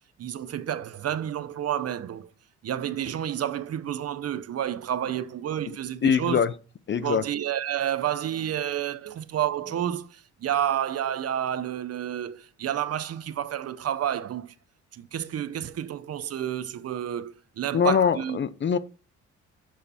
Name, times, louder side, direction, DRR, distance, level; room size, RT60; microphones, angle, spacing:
voice 1, 0.2-2.3 2.6-6.4 7.0-14.5 14.9-18.4, right 10 dB, 55° right, 0.8 m, -30 dB
voice 2, 6.0-6.5 6.9-7.2 17.7-18.8, left 7 dB, 40° left, 0.6 m, -23 dB
7.3 x 6.9 x 4.3 m
cardioid pair, 90°, 30 cm